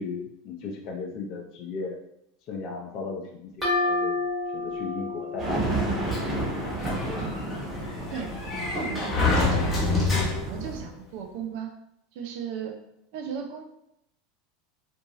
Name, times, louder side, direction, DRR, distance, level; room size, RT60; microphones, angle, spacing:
voice 1, 0.0-2.0 2.5-4.2 4.5-5.7, left 4 dB, 55° left, 0 dB, 0.4 m, -36 dB
sound 1, 3.6-7.2, left 2 dB, 15° right, 1.2 m, -30 dB
sound 2, 5.4-10.8, right 2 dB, 35° right, 1.1 m, -31 dB
Sliding door, 6.1-10.7, left 3 dB, 10° left, 0.9 m, -28 dB
voice 2, 8.1-11.7 12.1-12.8 13.1-13.6, right 7 dB, 65° right, 4 dB, 0.4 m, -37 dB
2.6 x 2.3 x 2.9 m, 0.79 s
hypercardioid pair, 90°, 0 cm